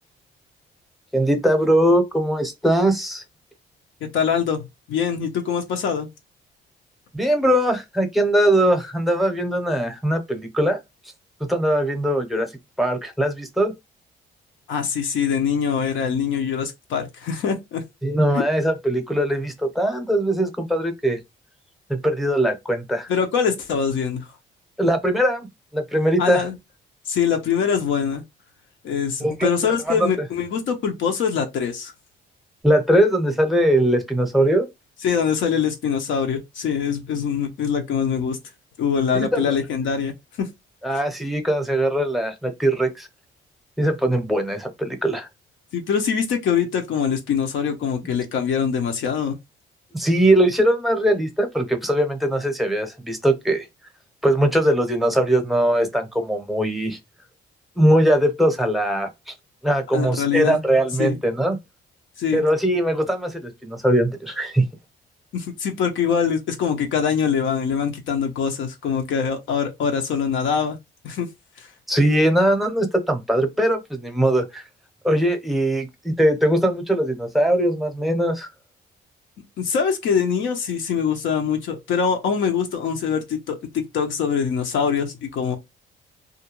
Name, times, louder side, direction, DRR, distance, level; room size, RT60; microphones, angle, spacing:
voice 1, 1.1-3.2 7.1-10.8 11.4-12.5 12.8-13.7 18.0-21.2 21.9-23.1 24.8-25.5 25.7-26.4 29.2-29.5 29.9-30.1 32.6-34.7 39.1-39.5 40.8-43.1 43.8-45.3 49.9-53.7 54.2-57.0 57.8-59.1 59.6-61.6 62.3-64.7 71.9-74.6 75.0-78.5, right 1 dB, ahead, 0.7 m, -20 dB
voice 2, 4.0-6.1 14.7-17.8 18.3-18.4 23.1-24.3 26.2-26.6 27.1-28.2 28.8-31.9 35.0-38.4 38.8-40.1 40.4-40.5 40.9-41.0 45.7-49.4 59.9-60.6 61.0-61.2 62.2-62.4 65.3-70.8 71.0-71.3 71.6-71.7 79.6-85.6, left 7 dB, 75° left, 0.6 m, -23 dB
2.4 x 2.1 x 2.9 m
cardioid pair, 90°, 20 cm